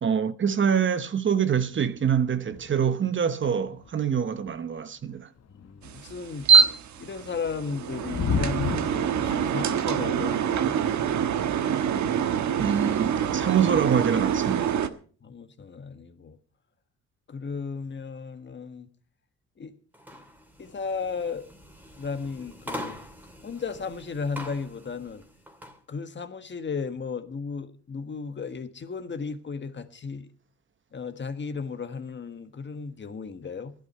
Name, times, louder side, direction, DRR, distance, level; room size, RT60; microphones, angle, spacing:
voice 1, 0.0-5.3 12.6-14.8, right 7 dB, 40° right, 1.0 m, -25 dB
sound 1, 1.6-2.9 3.2-3.3 3.6-6.4 6.9-12.5, left 6 dB, 55° left, 1.4 m, -35 dB
voice 2, 5.5-6.5 7.0-10.7 15.2-16.4 17.3-18.9 19.6-19.7 20.6-21.5 22.0-23.0 23.4-25.2 25.9-30.3 30.9-33.7, left 5 dB, 40° left, 1.5 m, -35 dB
sound 2, 5.8-14.9, right 7 dB, 70° right, 1.3 m, -25 dB
sound 3, 19.9-25.8, equal, 5° right, 2.6 m, -43 dB
14.5 x 11.5 x 5.5 m
cardioid pair, 90°, 30 cm